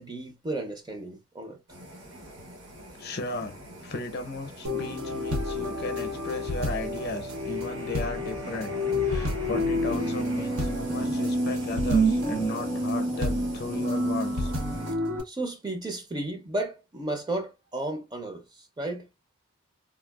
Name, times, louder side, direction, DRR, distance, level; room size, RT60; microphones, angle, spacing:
voice 1, 0.0-1.6 15.2-19.1, right 2 dB, 20° right, 0.5 m, -33 dB
sound 1, 1.7-14.9, right 1 dB, 65° right, 1.1 m, -42 dB
voice 2, 3.0-8.7 9.0-14.5, left 2 dB, 50° left, 0.6 m, -36 dB
sound 2, 4.6-15.2, equal, 85° right, 0.8 m, -28 dB
3.5 x 2.3 x 2.2 m
head